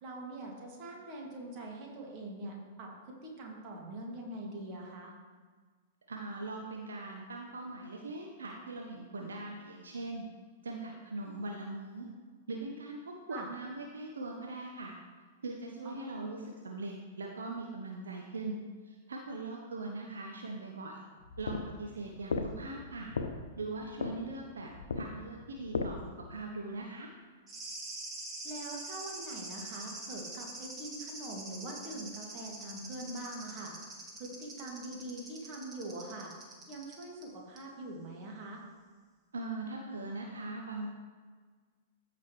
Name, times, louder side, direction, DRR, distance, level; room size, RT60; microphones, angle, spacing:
voice 1, 0.0-5.1 13.3-13.5 15.8-16.2 28.4-36.3 36.7-38.6, right 1 dB, 40° right, -1 dB, 2.1 m, -43 dB
voice 2, 6.1-10.3 10.6-12.1 12.5-15.0 15.4-18.6 18.8-21.0 21.4-23.1 23.6-24.7 24.9-26.0 26.3-27.1 39.3-40.9, right 2 dB, 70° right, 0 dB, 0.9 m, -41 dB
sound 1, 21.2-26.4, left 4 dB, 70° left, 0.6 m, -37 dB
sound 2, 27.5-37.2 37.6-37.7, right 2 dB, 20° right, 1.6 m, -45 dB
14.0 x 5.1 x 3.1 m, 1.5 s
figure-of-eight pair, 100°, 0 cm